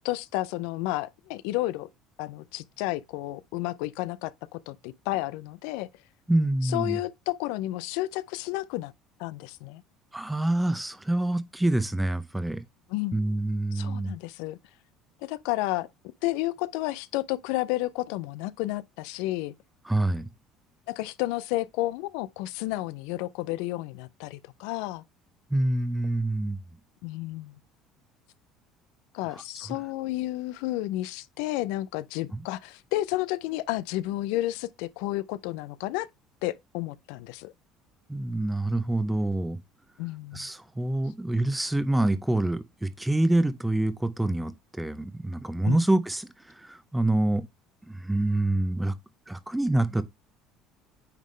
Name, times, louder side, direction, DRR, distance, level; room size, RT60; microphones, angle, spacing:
voice 1, 0.0-1.9 2.2-5.9 6.6-8.9 9.2-9.8 12.9-13.2 13.7-14.6 15.2-15.9 16.2-19.5 20.9-25.0 27.0-27.5 29.1-36.1 36.4-37.5 40.0-40.5 45.6-45.8, left 17 dB, 85° left, 0.3 m, -31 dB
voice 2, 6.3-7.0 10.1-12.6 13.1-14.1 19.9-20.3 25.5-26.6 32.3-32.4 38.1-39.6 40.3-47.4 47.9-48.9 49.3-50.0, right 1 dB, 5° right, 0.6 m, -26 dB
9.1 x 3.7 x 3.2 m
cardioid pair, 135°, 0 cm